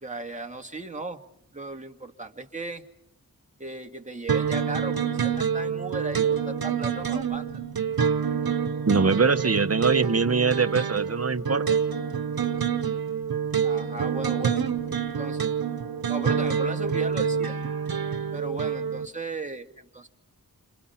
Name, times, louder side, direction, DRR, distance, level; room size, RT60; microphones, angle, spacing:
voice 1, 0.0-1.2 1.5-2.9 3.6-7.5 13.6-14.6 15.1-15.5 16.1-17.5 18.3-20.1, right 2 dB, 20° right, 3 dB, 2.0 m, -36 dB
sound 1, 4.3-19.1, right 7 dB, 85° right, 1.0 m, -27 dB
voice 2, 8.9-11.7, right 4 dB, 45° right, 10 dB, 1.0 m, -23 dB
30.0 x 26.5 x 5.8 m, 0.73 s
wide cardioid pair, 75°, 35 cm